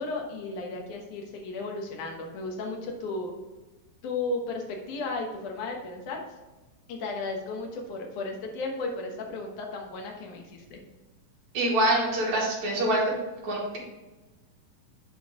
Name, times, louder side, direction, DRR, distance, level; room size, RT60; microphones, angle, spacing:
voice 1, 0.0-3.3 4.0-6.2 6.9-10.8, left 3 dB, 85° left, 1 dB, 2.8 m, -34 dB
voice 2, 11.5-13.1 13.4-13.8, right 1 dB, 70° right, -4 dB, 3.4 m, -25 dB
10.0 x 4.5 x 3.7 m, 1.2 s
omnidirectional pair, 3.4 m